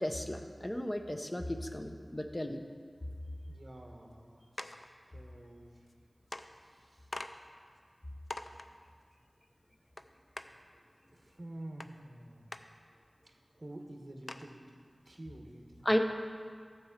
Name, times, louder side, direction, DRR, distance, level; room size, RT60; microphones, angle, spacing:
voice 1, 0.0-2.6 15.8-16.0, left 1 dB, 20° left, 5 dB, 0.8 m, -34 dB
voice 2, 3.5-4.4 5.1-5.7 11.4-12.4 13.6-14.6 15.1-15.9, right 1 dB, 45° right, 2 dB, 1.3 m, -48 dB
sound 1, 4.6-4.9 5.9-6.0 6.3-6.5 7.1-7.3 7.8-7.9 8.3-8.7 10.0-10.1 10.4-10.5 11.8-11.9 12.5-12.6 13.2-13.3 13.6-13.7 14.3-14.5, left 2 dB, 60° left, 0.4 m, -42 dB
13.0 x 4.6 x 7.3 m, 2.1 s
wide cardioid pair, 65°, 0 cm